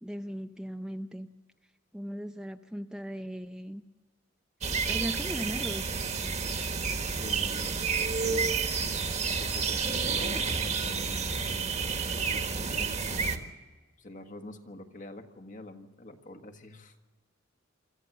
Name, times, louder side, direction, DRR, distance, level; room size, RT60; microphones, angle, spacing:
voice 1, 0.0-1.3 1.9-3.8 4.9-5.9, equal, 5° right, 6 dB, 0.6 m, -37 dB
sound 1, 4.6-13.4, right 5 dB, 35° right, 1.5 m, -30 dB
voice 2, 7.1-7.8 8.2-8.6 9.4-11.7 12.0-13.3 14.0-16.9, left 1 dB, 40° left, 5 dB, 1.6 m, -45 dB
25.0 x 14.0 x 7.8 m, 1.3 s
head